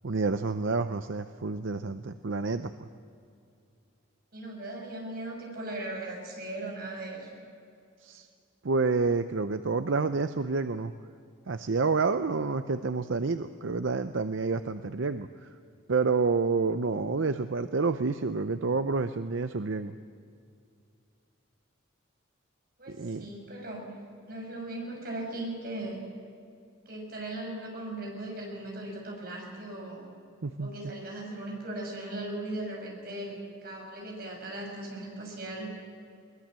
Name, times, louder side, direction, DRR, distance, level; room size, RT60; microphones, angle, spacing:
voice 1, 0.0-2.9 8.0-8.3 8.6-10.9 11.5-15.5 15.9-19.9 22.9-23.3 30.4-30.7, right 4 dB, 70° right, 10 dB, 0.6 m, -29 dB
voice 2, 4.3-7.5 22.8-24.0 24.3-26.0 26.9-30.1 30.6-35.7, right 1 dB, 45° right, 0 dB, 6.2 m, -38 dB
22.0 x 20.0 x 7.6 m, 2.5 s
head